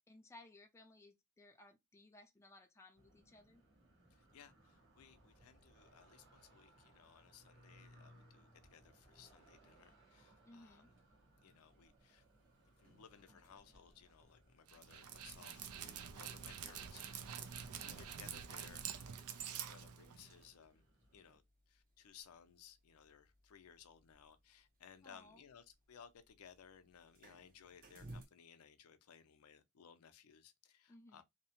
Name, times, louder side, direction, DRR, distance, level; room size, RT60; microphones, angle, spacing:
voice 1, 0.1-3.6 10.4-10.9 17.6-18.0 25.0-25.5 30.9-31.2, left 2 dB, 15° left, 0.4 m, -61 dB
sound 1, 2.9-21.4, right 1 dB, 60° right, 1.2 m, -67 dB
voice 2, 4.1-10.8 11.4-12.2 12.6-20.8 21.1-31.2, left 7 dB, 80° left, 0.5 m, -61 dB
sound 2, 10.8-28.3, right 2 dB, 40° right, 0.7 m, -65 dB
Dog, 14.7-20.5, right 8 dB, 85° right, 0.4 m, -47 dB
2.7 x 2.0 x 2.8 m
head